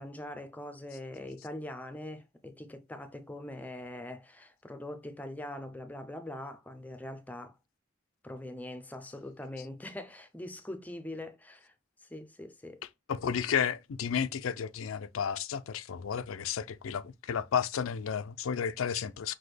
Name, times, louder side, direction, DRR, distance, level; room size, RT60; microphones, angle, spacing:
voice 1, 0.0-7.5 8.2-11.7 12.0-12.8, left 1 dB, 10° left, 0.5 m, -42 dB
voice 2, 13.1-19.3, left 7 dB, 90° left, 0.4 m, -32 dB
6.0 x 2.2 x 3.3 m
head